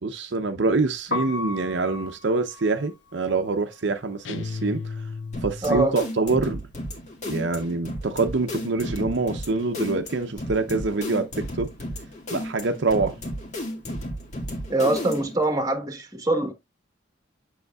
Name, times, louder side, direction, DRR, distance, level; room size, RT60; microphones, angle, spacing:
voice 1, 0.0-4.9 5.4-6.6 7.3-11.7 12.3-13.2, right 3 dB, 60° right, 0.7 m, -25 dB
Piano, 1.0-6.9 7.2-8.8 9.0-15.5, left 2 dB, 60° left, 1.3 m, -39 dB
sound 1, 4.2-6.0, left 4 dB, 75° left, 0.7 m, -34 dB
sound 2, 5.3-15.4, equal, 35° left, 1.9 m, -34 dB
voice 2, 5.6-5.9 14.7-16.5, right 2 dB, 20° right, 1.3 m, -23 dB
8.0 x 6.4 x 2.3 m
head